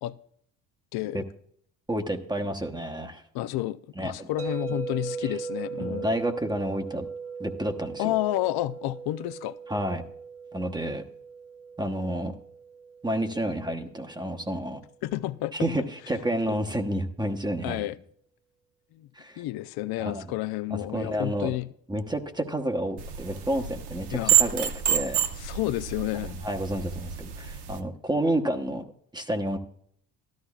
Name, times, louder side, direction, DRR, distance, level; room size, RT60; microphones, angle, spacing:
voice 1, 0.9-1.2 3.3-6.1 8.0-9.6 15.0-15.5 17.6-18.0 18.9-19.1 19.4-21.7 24.1-24.3 25.4-26.4, left 16 dB, 60° left, 0.5 m, -30 dB
voice 2, 1.9-3.2 4.0-4.3 5.8-7.0 7.4-8.1 9.7-10.0 10.5-11.0 11.8-12.3 13.0-14.8 15.5-17.9 19.2-19.4 20.0-20.2 20.7-21.5 21.9-25.2 26.1-28.8 29.1-29.6, right 1 dB, 10° right, 1.0 m, -30 dB
sound 1, 4.4-14.5, right 5 dB, 30° right, 1.2 m, -39 dB
sound 2, 23.0-27.8, right 10 dB, 65° right, 1.0 m, -28 dB
13.0 x 12.0 x 2.4 m
supercardioid pair, 75°, 43 cm